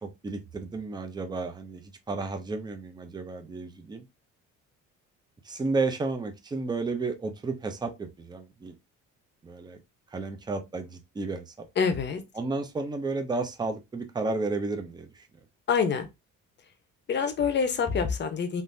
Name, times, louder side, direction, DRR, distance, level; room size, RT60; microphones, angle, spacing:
voice 1, 0.0-4.0 5.4-8.7 9.4-9.8 10.1-11.7 12.4-15.3, right 3 dB, 15° right, 0.5 m, -32 dB
voice 2, 11.8-12.2 15.7-16.1 17.1-18.6, left 6 dB, 35° left, 0.7 m, -26 dB
3.6 x 2.6 x 2.6 m
cardioid pair, 135°, 31 cm